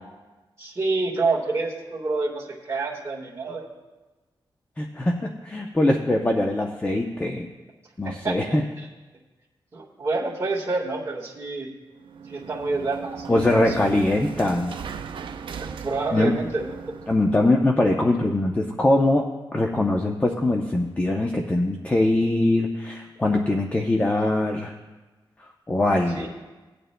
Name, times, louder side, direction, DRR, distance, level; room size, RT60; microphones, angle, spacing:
voice 1, 0.6-3.7 8.0-8.9 9.7-11.7 12.3-14.1 15.6-16.9 26.1-26.3, right 3 dB, 30° right, -6 dB, 1.6 m, -28 dB
voice 2, 4.8-7.5 8.0-8.6 13.3-14.7 16.1-16.3 17.1-19.3 19.5-24.7 25.7-26.3, left 2 dB, 20° left, 2 dB, 0.7 m, -22 dB
sound 1, 11.9-17.5, right 6 dB, 70° right, 0.5 m, -37 dB
18.5 x 9.1 x 2.2 m, 1.2 s
wide cardioid pair, 130°, 9 cm